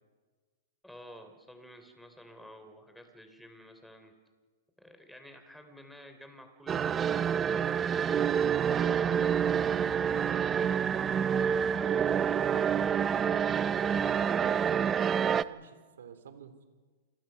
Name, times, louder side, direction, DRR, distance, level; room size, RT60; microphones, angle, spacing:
voice 1, 0.8-4.1 4.8-8.2 8.7-10.8 11.2-14.6, equal, ahead, 7 dB, 3.3 m, -51 dB
sound 1, 6.7-15.4, right 8 dB, 20° right, 0.6 m, -27 dB
voice 2, 15.3-16.6, right 7 dB, 85° right, 9 dB, 3.6 m, -51 dB
28.0 x 21.0 x 5.7 m, 1.4 s
hypercardioid pair, 145°, 0 cm